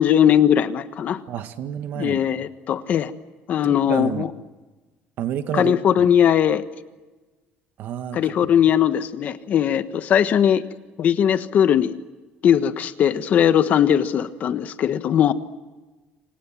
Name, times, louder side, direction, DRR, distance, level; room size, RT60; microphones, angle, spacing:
voice 1, 0.0-1.2 2.0-3.1 3.5-4.3 5.5-6.6 8.1-10.6 11.0-11.9 12.4-15.3, left 9 dB, 40° left, 11 dB, 1.3 m, -19 dB
voice 2, 1.3-2.2 3.6-4.3 5.2-5.8 7.8-8.3, right 10 dB, 55° right, 9 dB, 1.8 m, -29 dB
28.0 x 25.5 x 7.4 m, 1.2 s
cardioid pair, 160°, 4 cm